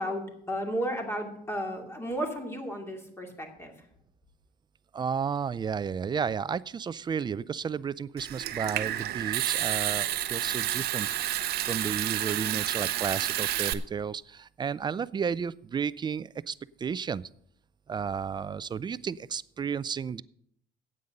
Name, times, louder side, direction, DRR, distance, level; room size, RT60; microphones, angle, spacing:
voice 1, 0.0-3.7, equal, 15° left, 2 dB, 2.5 m, -33 dB
voice 2, 4.9-17.3 17.9-20.2, right 6 dB, 25° right, 19 dB, 0.4 m, -33 dB
Water tap faucet / Sink (filling or washing) / Trickle dribble, 8.2-13.7, right 13 dB, 70° right, 0.7 m, -30 dB
9.4 x 8.7 x 6.6 m, 0.68 s
cardioid pair, 110°, 17 cm